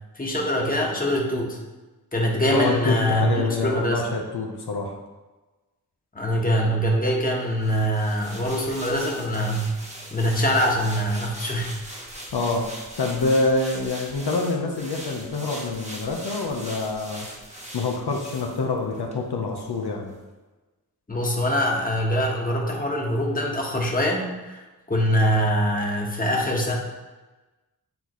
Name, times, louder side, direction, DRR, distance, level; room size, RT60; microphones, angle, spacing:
voice 1, 0.2-1.6 2.1-4.0 6.1-9.7 10.1-11.7 21.1-24.6 24.9-26.8, equal, 20° left, -2 dB, 1.3 m, -23 dB
voice 2, 2.5-5.0 12.3-17.3 17.7-20.1, left 3 dB, 80° left, 1 dB, 0.9 m, -26 dB
sound 1, 7.6-19.2 19.5-19.7, right 1 dB, 15° right, 1.3 m, -40 dB
8.8 x 4.0 x 3.1 m, 1.2 s
wide cardioid pair, 80°, 38 cm